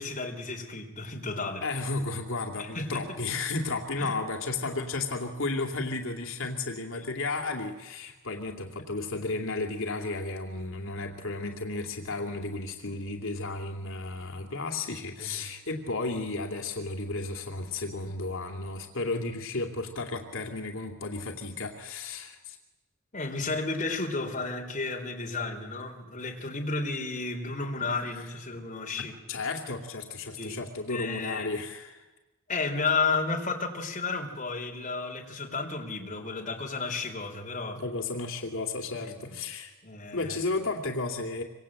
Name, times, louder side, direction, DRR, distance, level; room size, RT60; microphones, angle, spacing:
voice 1, 0.0-1.8 2.6-3.2 4.0-4.2 15.2-15.5 23.1-29.2 30.4-30.6 30.9-31.5 32.5-37.8 39.1-39.4 39.8-40.4, left 3 dB, 35° left, 1 dB, 3.9 m, -32 dB
voice 2, 1.6-22.6 29.3-32.0 37.7-39.8 40.1-41.4, left 3 dB, 75° left, 3 dB, 2.6 m, -33 dB
26.5 x 24.5 x 8.9 m, 1.1 s
head